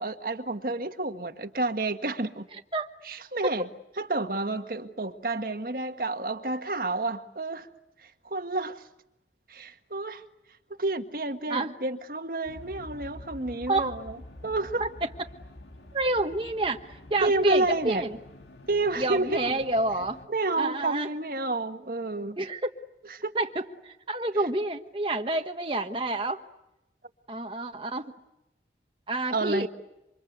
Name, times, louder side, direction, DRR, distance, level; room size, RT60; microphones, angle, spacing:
voice 1, 0.0-2.4 3.0-3.7 4.0-7.7 8.2-8.8 9.5-10.2 10.8-14.1 14.4-14.8 17.2-18.0 18.7-19.5 20.3-22.4 23.2-23.3 29.3-29.7, right 2 dB, 50° right, 7 dB, 1.6 m, -29 dB
sound 1, 12.5-20.3, left 1 dB, 80° left, 2.7 m, -47 dB
voice 2, 15.9-18.2 19.0-20.2 20.6-21.1 22.4-22.6 23.3-26.4 27.3-28.1 29.1-29.7, right 2 dB, 30° right, 3 dB, 1.3 m, -28 dB
28.5 x 26.0 x 8.1 m, 0.90 s
head